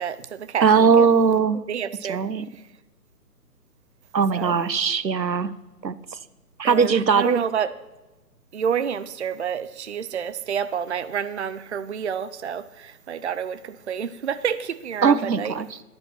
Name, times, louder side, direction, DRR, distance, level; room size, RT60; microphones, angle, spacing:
voice 1, 0.0-1.1 1.7-2.2 4.3-4.6 6.6-7.7 8.5-15.5, right 8 dB, 45° right, 0.6 m, -29 dB
voice 2, 0.6-1.6 2.1-2.5 4.1-5.5 5.8-6.2 6.6-7.4 15.0-15.8, right 5 dB, 85° right, 1.0 m, -20 dB
10.5 x 10.0 x 6.0 m
figure-of-eight pair, 145°, 49 cm